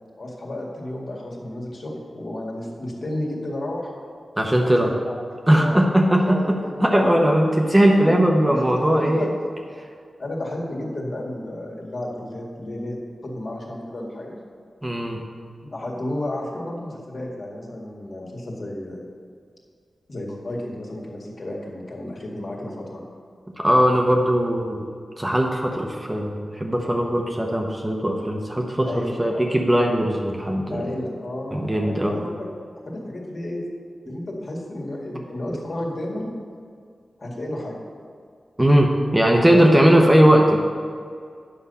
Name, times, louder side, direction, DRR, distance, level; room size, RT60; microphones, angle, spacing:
voice 1, 0.2-3.9 4.6-5.2 5.6-5.8 6.3-6.8 7.9-9.3 10.2-14.4 15.6-19.0 20.1-23.0 28.8-29.4 30.7-32.5 32.8-33.6 34.0-36.3 37.2-37.8 39.5-39.7, left 1 dB, 50° left, -2 dB, 2.0 m, -32 dB
voice 2, 4.4-4.9 5.5-9.3 14.8-15.2 23.6-24.9 25.2-30.8 31.5-32.2 38.6-40.6, equal, 10° right, 1 dB, 0.8 m, -19 dB
9.9 x 5.6 x 6.8 m, 2.2 s
wide cardioid pair, 140°, 0 cm